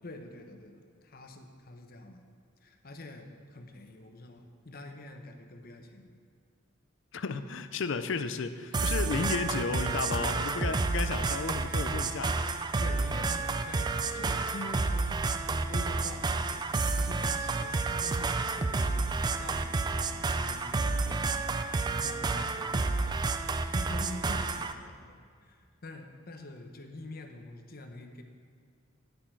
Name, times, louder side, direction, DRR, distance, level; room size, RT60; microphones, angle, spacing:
voice 1, 0.0-2.2 2.6-6.2 12.8-16.7 17.0-28.2, left 2 dB, 50° left, 5 dB, 0.8 m, -46 dB
voice 2, 7.1-12.5, left 4 dB, 65° left, 11 dB, 0.5 m, -33 dB
sound 1, 8.7-24.7, right 3 dB, 20° right, 0.3 m, -30 dB
9.9 x 8.4 x 4.6 m, 2.1 s
head